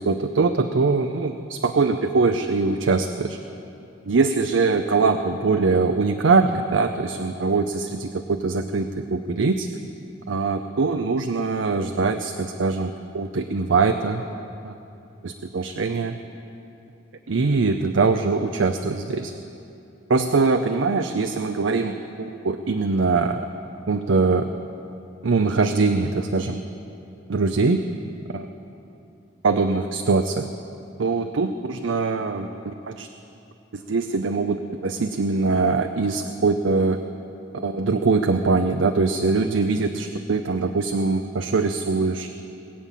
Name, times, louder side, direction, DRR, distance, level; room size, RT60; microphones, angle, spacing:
voice 1, 0.0-3.4 4.1-9.7 10.3-14.2 14.6-14.7 15.2-16.2 17.3-19.3 20.1-23.5 23.9-24.5 25.2-26.6 27.3-27.8 28.3-28.5 29.4-30.5 31.0-33.1 33.7-37.0 37.5-42.3, right 4 dB, 75° right, 7 dB, 0.6 m, -22 dB
20.5 x 8.6 x 7.4 m, 2.8 s
head